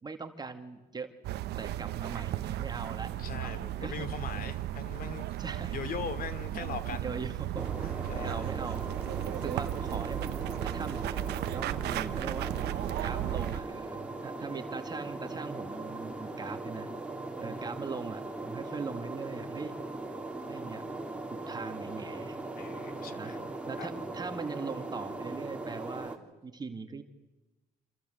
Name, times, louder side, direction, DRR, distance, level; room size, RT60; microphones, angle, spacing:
voice 1, 0.0-1.1 1.6-4.1 4.3-4.4 5.4-5.8 6.5-6.6 7.0-7.8 8.1-8.8 9.2-12.5 13.0-16.9 17.4-19.7 20.5-20.9 21.3-22.4 23.2-23.4 23.7-26.2 26.4-27.0, right 4 dB, 25° right, 6 dB, 2.1 m, -40 dB
sound 1, 1.2-13.6, right 13 dB, 75° right, 1.1 m, -35 dB
voice 2, 3.2-5.4 5.7-7.1 7.8-8.5 17.4-17.8 22.6-23.5 23.8-23.9, left 6 dB, 60° left, 11 dB, 2.7 m, -41 dB
sound 2, 7.6-26.2, right 2 dB, 5° right, 3.5 m, -39 dB
27.5 x 27.0 x 7.9 m, 1.1 s
cardioid pair, 110°, 17 cm